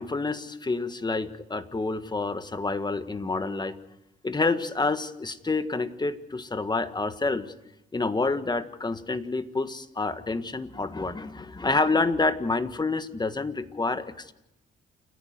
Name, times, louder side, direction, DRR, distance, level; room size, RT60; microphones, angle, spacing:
voice 1, 0.0-3.8 4.2-7.5 7.9-14.3, left 3 dB, 20° left, 11 dB, 1.5 m, -28 dB
29.0 x 11.0 x 9.5 m, 0.88 s
cardioid pair, 90°, 20 cm